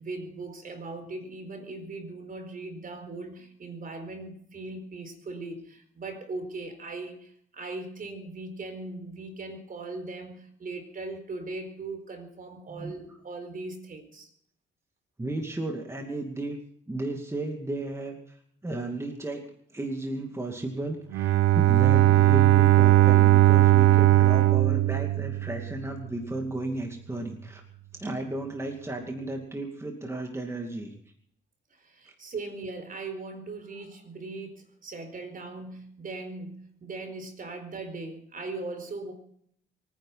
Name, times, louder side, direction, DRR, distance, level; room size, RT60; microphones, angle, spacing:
voice 1, 0.0-14.3 31.7-39.1, right 3 dB, 45° right, 7 dB, 4.4 m, -39 dB
voice 2, 15.2-16.6 16.9-18.4 18.6-19.4 19.7-27.6 27.9-30.9 32.1-32.2, right 2 dB, 15° right, 2 dB, 2.5 m, -34 dB
Bowed string instrument, 21.1-25.9, right 15 dB, 85° right, 0.9 m, -19 dB
23.5 x 10.0 x 5.8 m, 0.67 s
cardioid pair, 90°, 20 cm